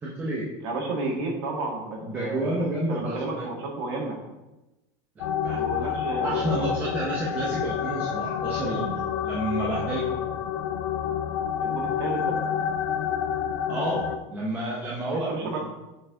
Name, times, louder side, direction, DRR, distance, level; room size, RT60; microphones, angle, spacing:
voice 1, 0.0-0.5 1.0-1.1 2.0-3.4 5.4-5.9 6.2-10.1 13.7-15.6, right 1 dB, 15° right, -5 dB, 0.7 m, -30 dB
voice 2, 0.6-2.6 2.9-4.2 5.5-6.8 11.6-12.3 15.1-15.6, right 2 dB, 75° right, 0 dB, 1.8 m, -32 dB
sound 1, 5.2-14.2, left 8 dB, 70° left, 0.5 m, -28 dB
6.9 x 4.4 x 3.7 m, 1.0 s
cardioid pair, 180°, 13 cm